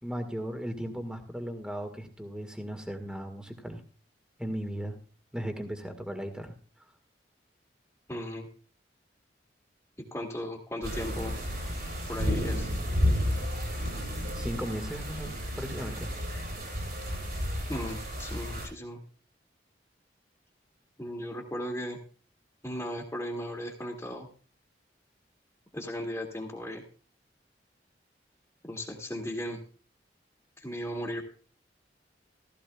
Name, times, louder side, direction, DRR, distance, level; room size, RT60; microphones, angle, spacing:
voice 1, 0.0-3.8 4.4-5.0 5.3-6.5 13.4-13.7 14.3-15.3 15.6-16.1, equal, 5° right, 6 dB, 1.8 m, -36 dB
voice 2, 8.1-8.5 10.1-11.3 12.1-12.7 17.7-19.0 21.0-22.0 22.6-24.3 25.7-26.8 28.6-29.6 30.6-31.2, equal, 15° left, -4 dB, 2.0 m, -36 dB
sound 1, 10.8-18.7, equal, 60° right, 7.8 m, -32 dB
16.0 x 15.5 x 2.3 m, 0.39 s
head